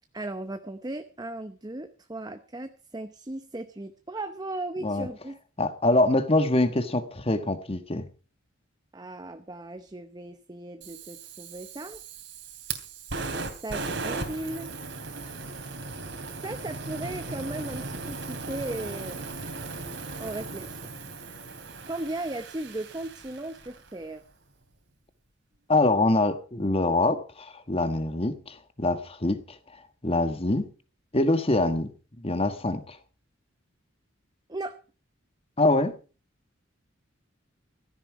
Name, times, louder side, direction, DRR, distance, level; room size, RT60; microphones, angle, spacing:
voice 1, 0.1-5.4 8.9-12.0 13.6-14.7 16.4-19.2 20.2-20.9 21.9-24.2 34.5-34.8, right 2 dB, 20° right, 0.8 m, -36 dB
voice 2, 5.6-8.1 25.7-29.4 30.0-30.7 31.1-31.9 32.2-33.0 35.6-35.9, left 2 dB, 30° left, 1.3 m, -24 dB
Fire, 10.8-23.9, right 3 dB, 65° right, 3.0 m, -37 dB
16.0 x 13.5 x 4.7 m
head